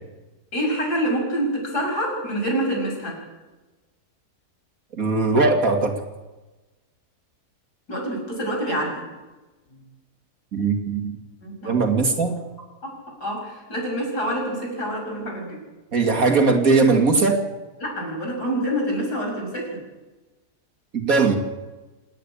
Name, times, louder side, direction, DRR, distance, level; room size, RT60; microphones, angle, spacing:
voice 1, 0.5-3.1 7.9-9.0 11.4-11.8 12.8-12.9 13.2-15.6 17.8-19.8, equal, 85° left, 1 dB, 6.7 m, -26 dB
voice 2, 5.0-5.9 10.5-11.2 11.7-12.4 15.9-17.4 20.9-21.4, right 4 dB, 60° right, 3 dB, 2.9 m, -19 dB
28.0 x 9.7 x 9.8 m, 1.2 s
omnidirectional pair, 1.7 m